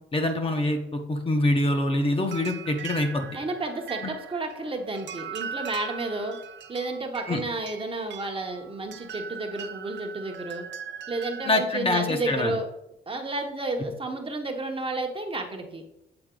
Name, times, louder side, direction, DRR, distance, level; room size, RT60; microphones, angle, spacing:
voice 1, 0.1-3.3 4.0-4.1 7.3-7.4 11.4-12.5, left 1 dB, 30° left, 4 dB, 0.9 m, -25 dB
sound 1, 2.2-11.5, right 7 dB, 65° right, 0.6 m, -40 dB
voice 2, 3.3-6.4 6.7-10.6 11.1-12.7 13.1-15.8, right 2 dB, 25° right, 3 dB, 1.0 m, -31 dB
7.9 x 3.9 x 3.8 m, 0.83 s
cardioid pair, 90°, 20 cm